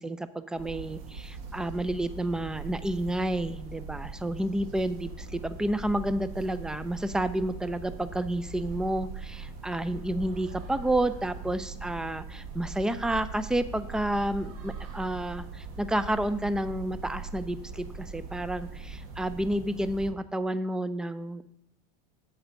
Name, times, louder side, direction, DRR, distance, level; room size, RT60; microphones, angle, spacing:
voice 1, 0.0-21.5, right 1 dB, 5° right, 14 dB, 0.4 m, -30 dB
sound 1, 0.5-20.1, right 4 dB, 65° right, 1.4 m, -41 dB
7.9 x 6.9 x 5.2 m, 0.74 s
supercardioid pair, 120°, 20 cm